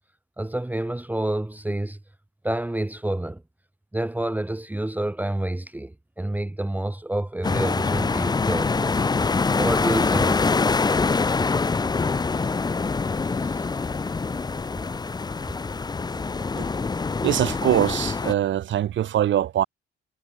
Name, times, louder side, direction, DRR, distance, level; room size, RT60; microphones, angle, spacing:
voice 1, 0.4-2.0 2.4-3.4 3.9-9.0 9.6-10.5 13.3-13.7, right 1 dB, 10° right, 1.2 m, -28 dB
sound 1, 7.4-18.3, left 4 dB, 20° left, 0.7 m, -24 dB
voice 2, 17.2-19.6, right 11 dB, 70° right, 2.9 m, -23 dB
cardioid pair, 90°, 20 cm